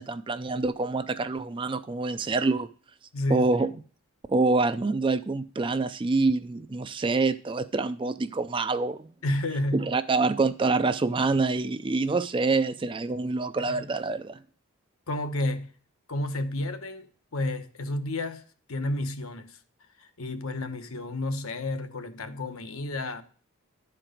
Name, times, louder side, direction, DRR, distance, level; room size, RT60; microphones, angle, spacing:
voice 1, 0.0-2.7 3.3-3.7 4.3-9.1 9.7-14.4, right 3 dB, 20° right, 0.3 m, -26 dB
voice 2, 3.1-3.7 9.2-9.9 13.7-13.9 15.1-15.7 16.1-17.1 17.3-19.6 20.0-23.2, left 1 dB, 70° left, 0.9 m, -31 dB
11.0 x 4.6 x 5.0 m
head